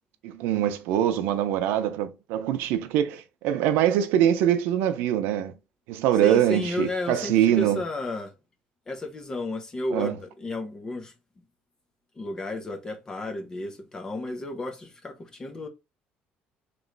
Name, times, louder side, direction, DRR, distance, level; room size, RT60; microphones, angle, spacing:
voice 1, 0.2-5.5 5.9-7.8 9.9-10.2, right 11 dB, 90° right, 0.6 m, -23 dB
voice 2, 6.2-8.3 8.9-11.1 12.1-15.7, left 2 dB, 20° left, 0.7 m, -32 dB
3.1 x 3.0 x 3.9 m
cardioid pair, 170°, 3 cm